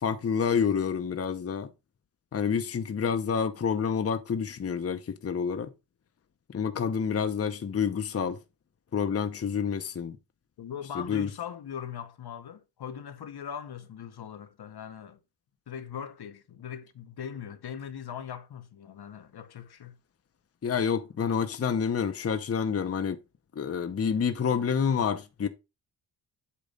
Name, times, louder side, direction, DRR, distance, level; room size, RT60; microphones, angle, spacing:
voice 1, 0.0-1.7 2.3-5.7 6.5-8.4 8.9-10.2 11.0-11.3 20.6-23.2 23.6-25.5, left 6 dB, 35° left, 0.7 m, -28 dB
voice 2, 10.6-15.2 15.7-20.0, left 8 dB, 60° left, 0.9 m, -40 dB
8.4 x 3.0 x 5.3 m
cardioid pair, 85°, 43 cm